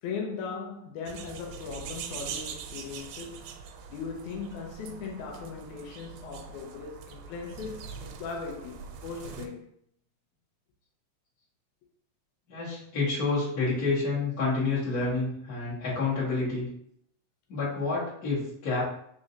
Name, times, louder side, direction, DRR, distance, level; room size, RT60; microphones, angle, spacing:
voice 1, 0.0-3.6 3.9-9.7, left 5 dB, 85° left, 2.1 m, -38 dB
sound 1, 1.1-9.5, right 6 dB, 90° right, 2.0 m, -43 dB
voice 2, 12.5-16.7 17.5-18.9, left 3 dB, 35° left, 1.9 m, -29 dB
4.6 x 3.8 x 2.7 m
omnidirectional pair, 3.3 m